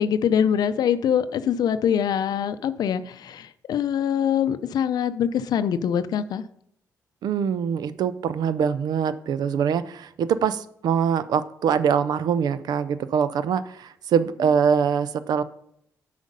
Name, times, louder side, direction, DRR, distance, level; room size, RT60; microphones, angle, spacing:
voice 1, 0.0-6.4, left 8 dB, 75° left, 12 dB, 0.5 m, -24 dB
voice 2, 7.2-15.4, right 7 dB, 80° right, 14 dB, 0.5 m, -23 dB
8.2 x 5.1 x 5.3 m, 0.71 s
cardioid pair, 85°, 7 cm